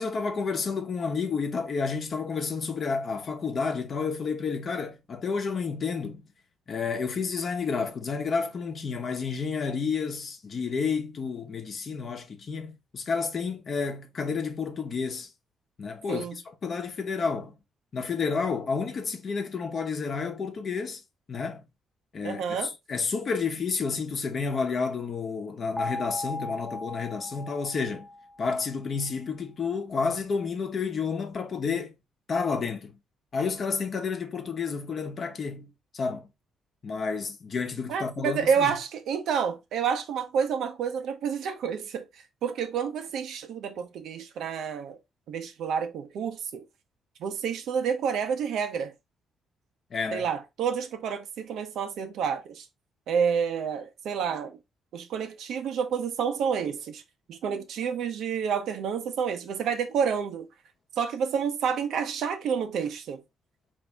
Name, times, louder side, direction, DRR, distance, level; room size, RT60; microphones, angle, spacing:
voice 1, 0.0-6.3 6.7-15.3 15.8-17.5 17.9-21.0 21.3-21.6 22.1-28.1 28.4-31.9 32.3-33.0 33.3-36.3 36.8-38.7 49.9-50.3, left 5 dB, 50° left, 0.9 m, -30 dB
voice 2, 22.2-22.7 37.9-42.0 42.4-45.0 45.3-46.6 47.2-48.9 50.1-52.7 53.1-54.6 54.9-57.0 57.3-60.5 61.0-63.2, right 7 dB, 75° right, 0.8 m, -29 dB
sound 1, 25.8-28.7, left 1 dB, 10° left, 0.6 m, -37 dB
4.1 x 2.7 x 3.5 m
cardioid pair, 90°, 0 cm